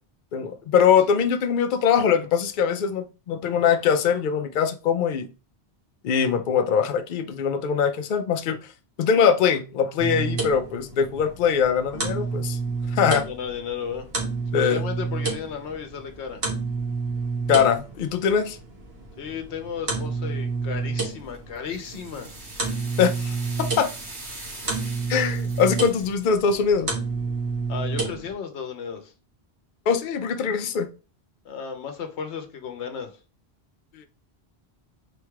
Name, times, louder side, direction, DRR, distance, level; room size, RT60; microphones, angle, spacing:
voice 1, 0.3-5.3 6.0-8.7 9.0-12.6 12.9-13.3 14.5-14.8 17.5-18.6 23.0-23.9 25.1-26.9 29.9-30.9 33.9-34.0, left 7 dB, 55° left, 0.6 m, -22 dB
sound 1, 10.0-28.3, right 4 dB, 65° right, 1.5 m, -30 dB
voice 2, 13.2-14.1 14.6-16.4 19.2-22.3 27.7-29.1 31.4-33.2, left 7 dB, 85° left, 1.0 m, -34 dB
sound 2, 21.1-26.2, right 2 dB, 80° right, 1.6 m, -41 dB
4.2 x 2.3 x 4.6 m
omnidirectional pair, 1.1 m